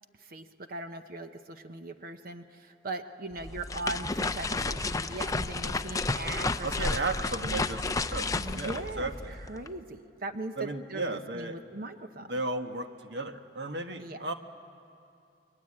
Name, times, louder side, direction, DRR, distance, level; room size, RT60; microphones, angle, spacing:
voice 1, 0.2-6.9 8.4-12.3 13.9-14.2, right 2 dB, 55° right, 8 dB, 0.9 m, -40 dB
sound 1, 3.3-9.7, left 3 dB, 20° left, 0.6 m, -32 dB
voice 2, 6.6-9.4 10.6-11.6 12.3-14.3, right 2 dB, 70° right, 6 dB, 1.3 m, -35 dB
29.0 x 22.0 x 8.7 m, 2.5 s
head